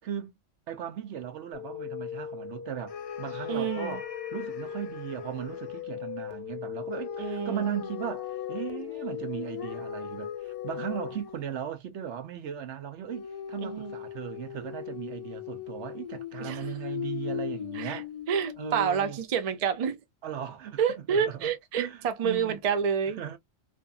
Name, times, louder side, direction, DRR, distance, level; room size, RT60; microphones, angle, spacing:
voice 1, 0.0-0.3 0.7-18.1 18.6-19.2 20.2-21.5 21.8-22.6 23.1-23.4, right 9 dB, 80° right, 1.0 m, -37 dB
sound 1, 1.5-11.1, left 9 dB, 65° left, 0.8 m, -39 dB
sound 2, 2.9-5.9 6.9-11.7 13.1-19.2, left 9 dB, 50° left, 0.4 m, -39 dB
voice 2, 3.5-4.0 7.2-7.7 13.6-13.9 16.4-16.6 17.8-18.0 18.3-20.0 20.8-23.2, right 7 dB, 45° right, 0.5 m, -28 dB
2.6 x 2.5 x 2.2 m
omnidirectional pair, 1.2 m